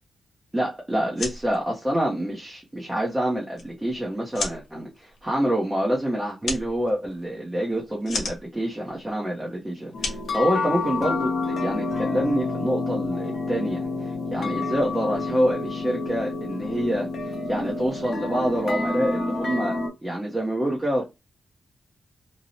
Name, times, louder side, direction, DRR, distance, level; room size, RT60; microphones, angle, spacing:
voice 1, 0.5-21.0, right 1 dB, 10° right, 0.6 m, -27 dB
sound 1, 1.0-11.2, left 3 dB, 85° left, 0.9 m, -37 dB
sound 2, 9.9-19.9, left 3 dB, 60° left, 0.7 m, -28 dB
2.6 x 2.0 x 2.8 m
wide cardioid pair, 120°, 0 cm